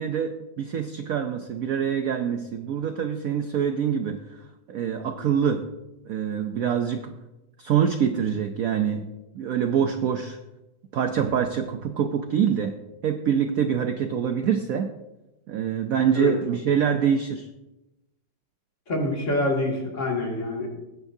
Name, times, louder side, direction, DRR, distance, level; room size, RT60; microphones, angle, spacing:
voice 1, 0.0-4.2 4.7-5.7 6.1-7.1 7.6-9.1 9.3-10.4 10.9-12.7 13.0-14.9 15.5-17.5, right 8 dB, 75° right, 7 dB, 0.8 m, -25 dB
voice 2, 18.9-20.7, left 2 dB, 35° left, -1 dB, 2.6 m, -26 dB
20.5 x 9.6 x 2.7 m, 1.0 s
omnidirectional pair, 2.3 m